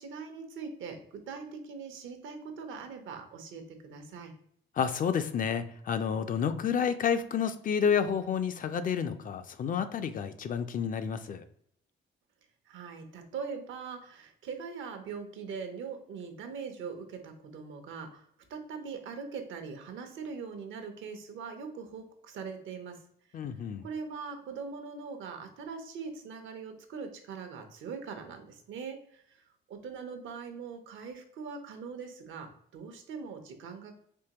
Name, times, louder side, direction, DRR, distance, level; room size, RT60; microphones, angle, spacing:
voice 1, 0.0-4.3 12.7-23.0 23.8-33.9, right 5 dB, 75° right, 6 dB, 0.7 m, -41 dB
voice 2, 4.8-11.4 23.3-23.8, left 7 dB, 45° left, 10 dB, 0.4 m, -30 dB
3.6 x 2.9 x 2.8 m, 0.68 s
cardioid pair, 90°, 20 cm